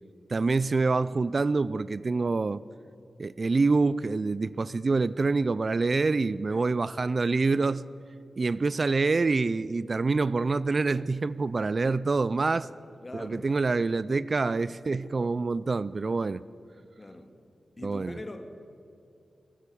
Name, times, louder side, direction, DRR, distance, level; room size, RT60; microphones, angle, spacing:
voice 1, 0.3-2.6 3.2-7.8 8.4-12.7 13.1-16.4 17.8-18.2, right 3 dB, 55° right, 0.4 m, -26 dB
voice 2, 13.0-13.5 17.0-17.3 17.8-18.4, left 2 dB, 35° left, 1.9 m, -42 dB
20.5 x 10.0 x 6.8 m
cardioid pair, 40°, 0 cm